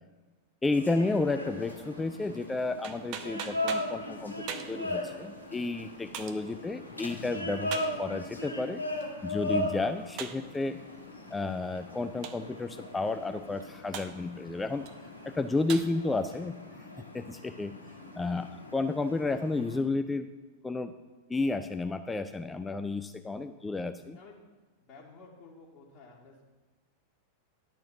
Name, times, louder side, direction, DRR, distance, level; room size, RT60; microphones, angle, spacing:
voice 1, 0.6-8.8 9.2-10.8 11.3-14.9 15.2-16.6 17.1-17.8 18.1-20.3 20.6-20.9 21.3-24.2, left 3 dB, 10° left, 10 dB, 0.3 m, -32 dB
sound 1, 0.7-19.8, left 1 dB, 85° left, 1.3 m, -38 dB
sound 2, 1.3-15.9, right 8 dB, 40° right, 0.7 m, -46 dB
voice 2, 23.5-24.4 24.8-26.5, left 3 dB, 35° left, -5 dB, 1.7 m, -54 dB
11.0 x 4.5 x 7.1 m, 1.3 s
figure-of-eight pair, 90°, 0 cm